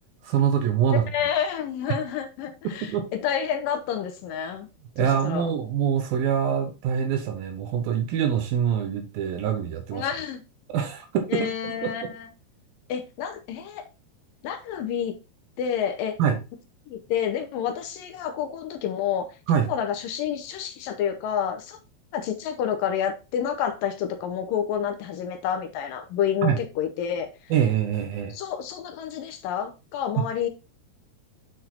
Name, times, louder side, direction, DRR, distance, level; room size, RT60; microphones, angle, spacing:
voice 1, 0.2-1.0 1.9-2.0 2.9-3.0 5.0-10.1 10.7-12.1 16.2-16.4 19.5-19.7 26.4-26.6 27.5-28.3 30.2-30.3, right 8 dB, 70° right, 2.6 m, -24 dB
voice 2, 1.1-2.9 3.2-4.7 5.0-5.5 9.9-10.4 11.3-12.3 12.9-13.9 14.4-15.1 15.6-16.2 16.9-19.3 19.7-21.8 22.1-27.3 28.3-30.5, left 8 dB, 70° left, 2.3 m, -29 dB
8.2 x 4.6 x 4.1 m
omnidirectional pair, 4.7 m